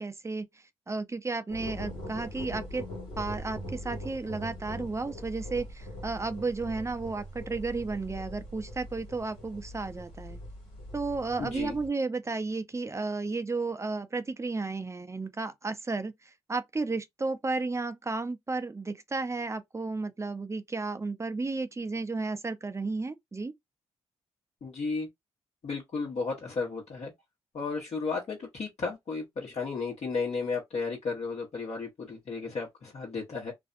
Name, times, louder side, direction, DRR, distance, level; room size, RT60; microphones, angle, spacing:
voice 1, 0.0-2.8 3.2-10.4 10.9-23.5, right 3 dB, 20° right, 0.5 m, -33 dB
sound 1, 1.5-11.9, equal, 90° left, 1.4 m, -41 dB
voice 2, 11.4-11.7 24.6-25.1 25.6-27.1 27.5-33.5, left 4 dB, 55° left, 1.0 m, -34 dB
2.5 x 2.1 x 2.5 m
supercardioid pair, 45°, 13 cm